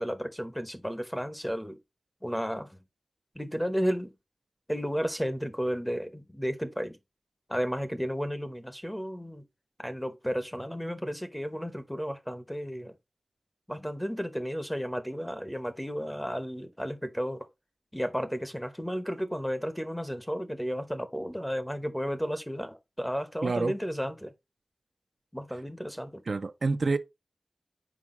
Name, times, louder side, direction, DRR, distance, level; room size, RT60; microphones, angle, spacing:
voice 1, 0.0-1.8 2.2-2.8 3.3-4.1 4.7-7.0 7.5-9.4 9.8-13.0 13.7-17.5 17.9-24.3 25.3-26.2, equal, 5° left, 0.9 m, -33 dB
voice 2, 23.4-23.7 26.3-27.0, right 3 dB, 65° right, 0.5 m, -27 dB
6.0 x 4.7 x 3.7 m
wide cardioid pair, 85°, 0 cm